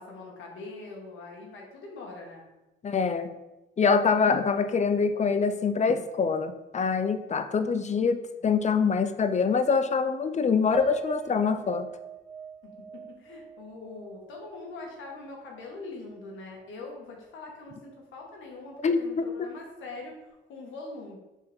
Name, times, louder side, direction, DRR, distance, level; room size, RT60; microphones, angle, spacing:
voice 1, 0.0-2.5 12.6-21.2, left 3 dB, 85° left, 0 dB, 1.7 m, -43 dB
voice 2, 2.8-3.3 3.8-11.9 18.8-19.3, left 5 dB, 35° left, 9 dB, 0.6 m, -25 dB
Piano, 10.7-15.2 15.6-15.7 16.1-16.3, right 4 dB, 5° right, 0.7 m, -40 dB
6.6 x 4.5 x 3.5 m, 1.0 s
cardioid pair, 100°, 20 cm